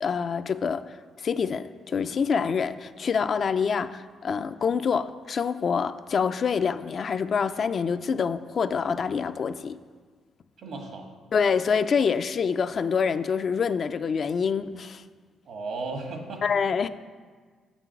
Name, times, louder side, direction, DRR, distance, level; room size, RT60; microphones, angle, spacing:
voice 1, 0.0-9.8 11.3-15.0 16.4-16.9, left 6 dB, 50° left, 11 dB, 0.3 m, -26 dB
voice 2, 10.6-11.1 15.5-16.4, right 3 dB, 75° right, 3 dB, 1.4 m, -35 dB
7.0 x 6.0 x 5.8 m, 1.5 s
cardioid pair, 90°, 0 cm